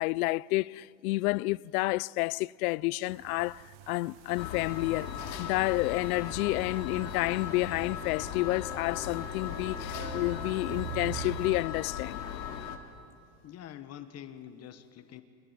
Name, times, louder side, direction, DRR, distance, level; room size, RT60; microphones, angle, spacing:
voice 1, 0.0-5.1 5.4-12.2, left 21 dB, 60° left, 0.6 m, -30 dB
sound 1, 3.1-11.6, right 16 dB, 45° right, 0.8 m, -45 dB
sound 2, 4.4-12.8, left 9 dB, 85° left, 2.9 m, -38 dB
sound 3, 7.9-12.2, right 1 dB, 20° right, 5.8 m, -49 dB
voice 2, 13.4-15.2, left 10 dB, 30° left, 1.3 m, -46 dB
27.0 x 20.5 x 9.6 m
supercardioid pair, 135°, 50 cm